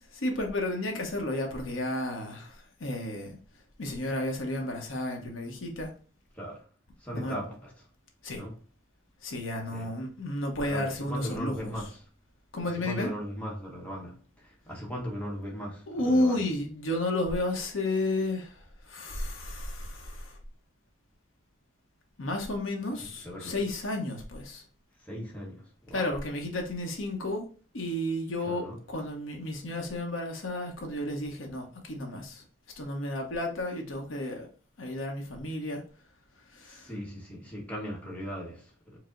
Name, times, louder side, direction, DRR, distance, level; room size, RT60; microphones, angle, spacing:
voice 1, 0.1-3.4 3.8-5.9 7.1-7.4 8.2-8.4 9.2-11.7 12.5-13.1 15.9-18.6 18.9-20.3 22.2-24.6 25.9-27.5 27.7-32.4 32.8-34.5 34.8-35.8 36.6-36.9, left 1 dB, 75° left, 0.8 m, -32 dB
voice 2, 7.0-7.8 8.3-8.6 9.7-10.0 10.6-12.1 12.7-16.4 23.0-23.6 25.0-26.2 28.4-28.8 36.6-39.0, equal, 5° left, 0.9 m, -38 dB
4.7 x 2.0 x 3.7 m
head